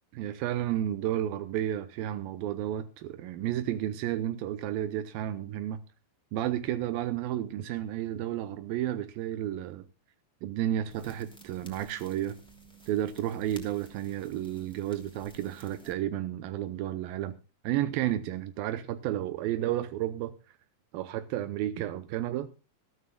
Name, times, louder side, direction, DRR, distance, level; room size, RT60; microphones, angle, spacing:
voice 1, 0.1-5.8 6.3-9.9 10.4-12.4 12.9-17.4 17.6-20.3 20.9-22.5, right 12 dB, 85° right, 2.5 m, -32 dB
sound 1, 10.9-15.9, right 3 dB, ahead, 2.2 m, -53 dB
21.0 x 13.5 x 2.3 m
omnidirectional pair, 4.1 m